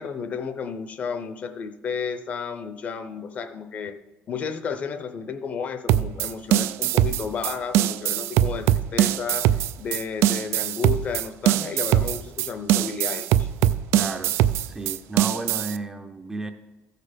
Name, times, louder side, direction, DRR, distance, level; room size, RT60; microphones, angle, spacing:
voice 1, 0.0-3.9 4.3-9.5 9.8-13.5, left 6 dB, 35° left, 10 dB, 0.6 m, -32 dB
sound 1, 5.9-15.8, right 13 dB, 90° right, 0.3 m, -22 dB
voice 2, 13.9-14.3 14.6-16.5, right 2 dB, 10° right, 7 dB, 0.5 m, -32 dB
14.5 x 6.6 x 5.0 m, 1.1 s
cardioid pair, 175°, 4 cm